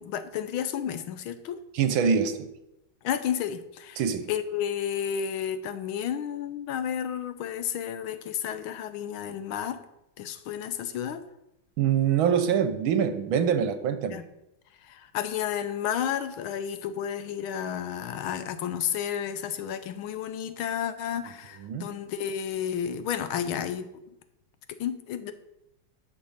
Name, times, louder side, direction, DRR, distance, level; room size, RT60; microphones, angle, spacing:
voice 1, 0.0-1.6 3.0-4.0 4.3-9.8 10.2-11.2 14.1-14.2 14.8-23.9 24.7-25.3, left 9 dB, 85° left, 11 dB, 1.6 m, -31 dB
voice 2, 1.7-2.5 4.0-4.3 11.8-14.2 21.6-21.9, right 7 dB, 80° right, 10 dB, 1.7 m, -24 dB
10.5 x 6.3 x 5.6 m, 0.87 s
omnidirectional pair, 2.2 m